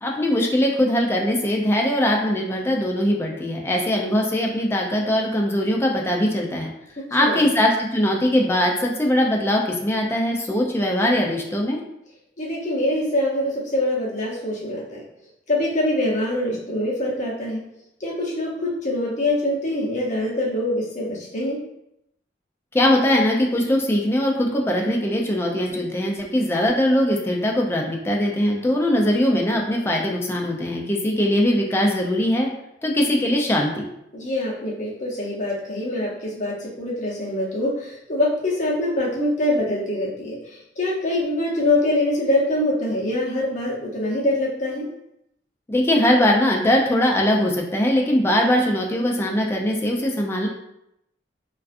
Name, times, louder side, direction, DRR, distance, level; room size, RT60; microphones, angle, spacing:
voice 1, 0.0-6.7 7.1-11.8 22.7-32.5 32.8-33.9 45.7-50.5, left 1 dB, 15° left, 0 dB, 0.3 m, -21 dB
voice 2, 12.4-15.0 15.5-17.6 18.0-21.6 34.1-44.9, left 1 dB, 45° left, -5 dB, 0.7 m, -24 dB
2.4 x 2.3 x 2.4 m, 0.81 s
head